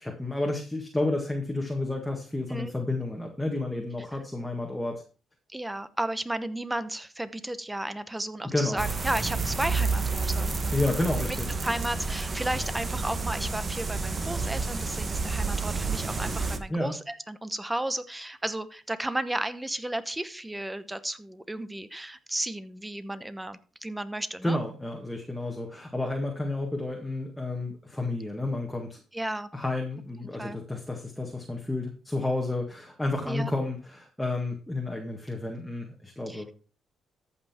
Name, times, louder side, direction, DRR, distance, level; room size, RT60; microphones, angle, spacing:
voice 1, 0.0-5.0 8.4-8.8 10.7-11.6 16.7-16.9 24.4-29.0 29.5-36.5, left 2 dB, 5° left, 1 dB, 1.8 m, -31 dB
voice 2, 5.5-10.5 11.3-11.4 11.6-24.6 29.1-29.5 30.4-30.6 33.2-33.5 36.3-36.4, right 1 dB, 10° right, 13 dB, 0.9 m, -33 dB
sound 1, 8.8-16.6, right 4 dB, 35° right, 1.3 m, -30 dB
14.0 x 5.7 x 4.4 m, 0.37 s
cardioid pair, 90°, 0 cm